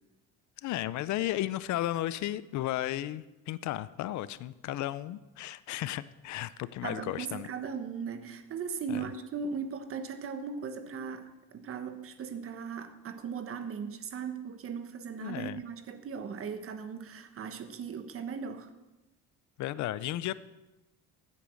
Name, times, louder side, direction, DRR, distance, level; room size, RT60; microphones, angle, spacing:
voice 1, 0.6-7.5 8.9-9.1 15.2-15.6 19.6-20.3, left 14 dB, 60° left, 17 dB, 0.5 m, -34 dB
voice 2, 6.8-18.7, right 6 dB, 40° right, 10 dB, 1.2 m, -38 dB
16.0 x 8.5 x 6.3 m, 1.0 s
cardioid pair, 145°, 33 cm